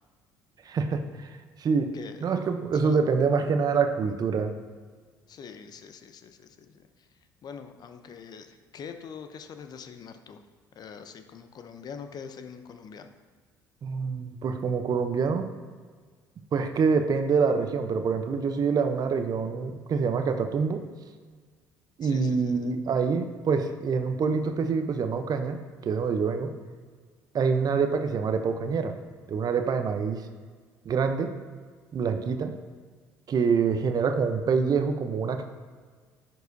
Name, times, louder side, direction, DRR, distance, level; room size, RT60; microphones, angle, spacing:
voice 1, 0.6-1.9 2.2-4.5 13.8-15.5 16.5-20.8 22.0-26.5 27.3-28.9 29.3-30.3 30.8-31.3 31.9-32.5 33.3-35.4, right 5 dB, 45° right, 7 dB, 0.7 m, -26 dB
voice 2, 1.9-2.3 2.8-3.0 5.3-7.1 7.4-10.4 10.7-13.1 22.0-22.7, left 6 dB, 50° left, 8 dB, 0.6 m, -44 dB
10.5 x 4.7 x 2.7 m, 1.6 s
hypercardioid pair, 60°, 9 cm